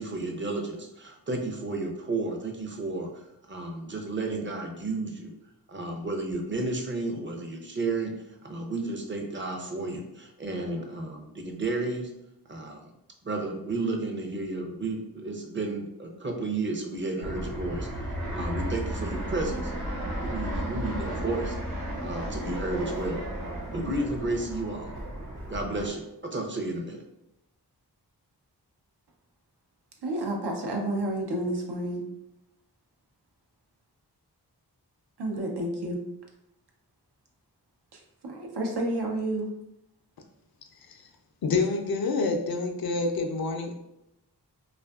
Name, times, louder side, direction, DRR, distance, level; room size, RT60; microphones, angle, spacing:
voice 1, 0.0-3.2 3.5-5.3 5.7-8.1 8.4-12.1 12.5-12.8 13.2-17.9 18.3-19.7 20.2-21.6 22.0-23.2 23.7-24.9 25.5-27.0, right 2 dB, 30° right, 0.6 m, -32 dB
Fixed-wing aircraft airplane, 17.2-25.9, right 1 dB, 50° right, 1.1 m, -34 dB
voice 2, 30.0-32.0 35.2-36.0 37.9-39.5, right 1 dB, 75° right, 0.7 m, -30 dB
voice 3, 41.4-43.7, left 3 dB, 65° left, 0.5 m, -27 dB
2.5 x 2.4 x 2.3 m
cardioid pair, 45°, 40 cm